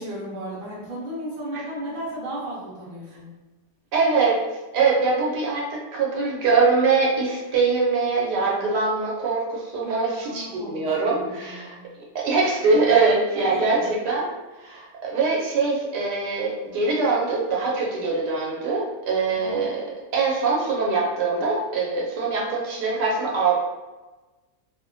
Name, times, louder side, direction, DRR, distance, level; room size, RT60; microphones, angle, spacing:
voice 1, 0.0-3.3 9.8-11.8 13.4-13.9 19.3-19.6, right 1 dB, 45° right, -5 dB, 0.9 m, -35 dB
voice 2, 3.9-4.4 4.7-11.8 12.1-14.2 14.6-23.5, right 4 dB, 80° right, -3 dB, 1.2 m, -23 dB
2.8 x 2.0 x 2.6 m, 1.2 s
omnidirectional pair, 1.7 m